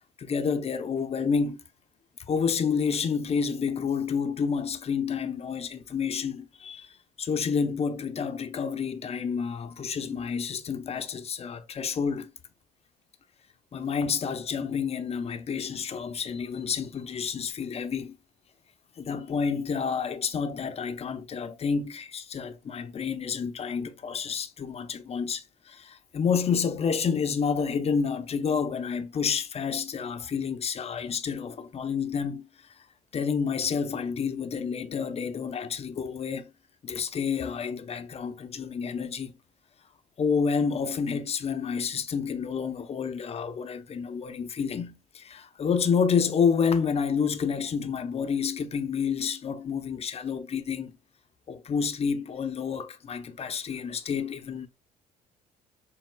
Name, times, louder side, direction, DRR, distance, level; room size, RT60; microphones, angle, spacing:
voice 1, 0.2-1.6 2.2-12.3 13.7-18.2 19.0-32.5 33.1-36.5 36.8-39.3 40.2-51.0 51.5-54.7, left 6 dB, 35° left, 0.7 m, -29 dB
6.7 x 3.5 x 2.3 m
cardioid pair, 110°, 17 cm